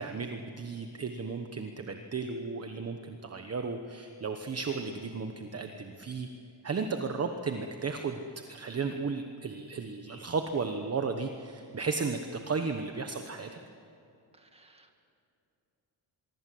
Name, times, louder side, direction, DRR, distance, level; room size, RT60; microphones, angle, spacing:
voice 1, 0.0-6.3 6.6-8.2 8.5-12.2 12.5-13.5, right 4 dB, 30° right, 6 dB, 1.1 m, -34 dB
voice 2, 14.4-15.0, right 2 dB, 10° right, 4 dB, 2.0 m, -61 dB
25.0 x 23.0 x 7.8 m, 2.6 s
wide cardioid pair, 175°, 47 cm